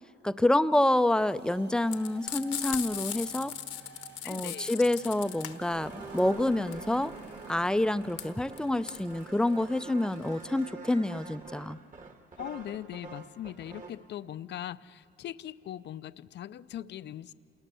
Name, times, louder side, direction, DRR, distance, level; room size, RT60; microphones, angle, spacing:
voice 1, 0.2-3.5 4.3-7.1 7.5-11.8, left 1 dB, 5° left, 14 dB, 0.5 m, -27 dB
sound 1, 1.1-7.6, right 4 dB, 60° right, 2.1 m, -53 dB
Frying (food), 1.9-10.6, left 11 dB, 85° left, 1.3 m, -38 dB
voice 2, 4.2-4.8 12.4-17.3, left 11 dB, 60° left, 15 dB, 0.5 m, -40 dB
sound 2, 5.2-14.1, right 4 dB, 40° right, 1.9 m, -46 dB
28.0 x 19.0 x 6.8 m, 2.5 s
cardioid pair, 90°, 20 cm